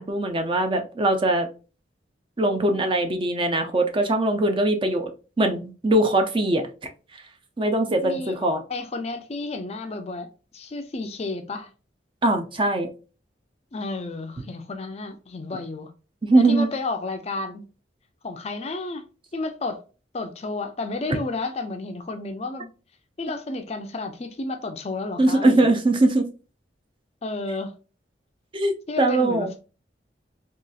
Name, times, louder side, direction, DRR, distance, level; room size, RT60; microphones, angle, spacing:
voice 1, 0.0-1.5 2.4-5.1 5.4-6.6 7.6-8.6 12.2-12.9 16.2-16.7 25.2-26.2 28.5-28.7 29.0-29.5, right 2 dB, 30° right, 0.5 m, -21 dB
voice 2, 8.0-11.7 13.7-15.9 16.4-17.7 18.2-19.0 19.3-19.8 20.1-22.7 23.2-25.7 27.2-27.7 28.9-29.6, left 3 dB, 35° left, 0.4 m, -32 dB
3.9 x 2.4 x 2.3 m
head